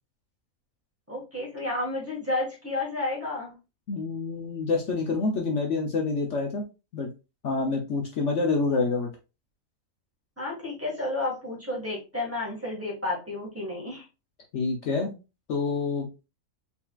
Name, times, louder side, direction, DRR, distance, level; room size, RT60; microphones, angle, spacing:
voice 1, 1.1-3.5 10.4-14.0, left 2 dB, 10° right, -4 dB, 1.5 m, -31 dB
voice 2, 3.9-6.6 6.9-7.1 7.4-9.1 14.5-15.1 15.5-16.1, left 3 dB, 60° left, 2 dB, 1.0 m, -27 dB
4.3 x 3.8 x 2.3 m, 0.28 s
omnidirectional pair, 1.5 m